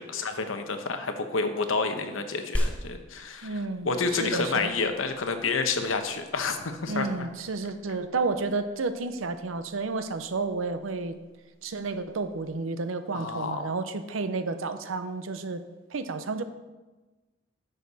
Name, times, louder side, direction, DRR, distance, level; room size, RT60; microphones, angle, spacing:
voice 1, 0.0-7.3 13.1-13.7, left 4 dB, 80° left, 7 dB, 1.0 m, -29 dB
sound 1, 2.5-12.5, equal, 5° left, 1.0 m, -38 dB
voice 2, 3.4-4.7 6.9-11.2 11.6-15.6 15.9-16.4, right 3 dB, 90° right, 10 dB, 0.7 m, -31 dB
10.0 x 6.6 x 4.1 m, 1.2 s
head